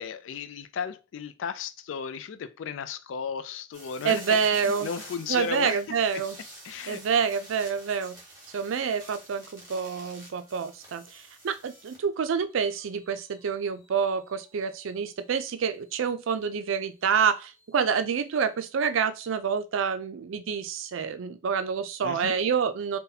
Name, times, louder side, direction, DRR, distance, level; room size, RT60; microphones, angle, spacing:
voice 1, 0.0-6.0 6.6-7.0 22.0-22.4, left 6 dB, 80° left, 0.3 m, -35 dB
sound 1, 3.7-12.1 12.5-18.5, right 1 dB, 20° right, 1.2 m, -50 dB
voice 2, 4.0-4.9 5.3-6.4 6.9-8.2 8.5-23.0, right 6 dB, 90° right, 0.4 m, -27 dB
2.7 x 2.2 x 3.9 m
head